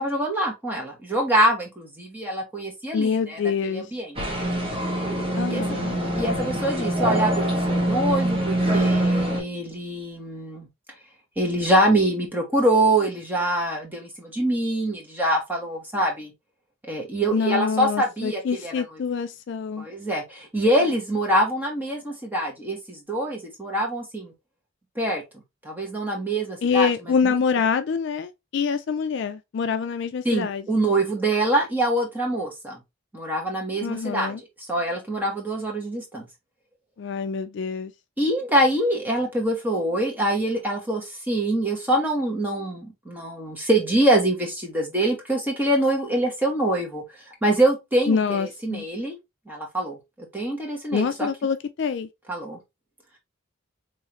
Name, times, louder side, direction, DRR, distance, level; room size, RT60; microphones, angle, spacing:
voice 1, 0.0-3.4 3.7-4.2 5.5-5.6 6.1-10.7 11.4-16.3 16.8-18.7 19.8-24.3 24.9-25.2 25.6-26.9 27.2-27.4 30.2-32.8 33.1-36.3 38.2-47.0 47.4-49.1 49.5-51.3 52.3-52.6, right 1 dB, 10° right, 1.1 m, -24 dB
voice 2, 2.9-3.9 5.4-6.0 17.3-19.9 26.6-30.8 33.8-34.4 37.0-37.9 48.1-48.9 50.9-52.1, left 6 dB, 55° left, 0.3 m, -25 dB
sound 1, 4.2-9.4, right 1 dB, 25° right, 1.4 m, -24 dB
3.7 x 3.2 x 2.9 m
head